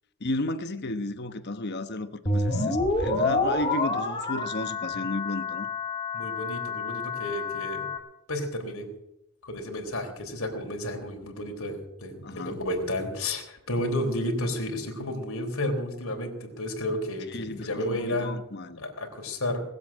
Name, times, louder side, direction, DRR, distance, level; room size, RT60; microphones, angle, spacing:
voice 1, 0.2-5.7 12.2-12.6 17.3-18.8, left 2 dB, 50° left, 1.0 m, -33 dB
sound 1, 2.3-8.0, left 3 dB, 25° left, 2.6 m, -28 dB
voice 2, 6.1-7.9 8.3-8.9 9.4-18.3 18.8-19.6, left 1 dB, 70° left, 3.7 m, -32 dB
20.0 x 8.1 x 8.6 m
head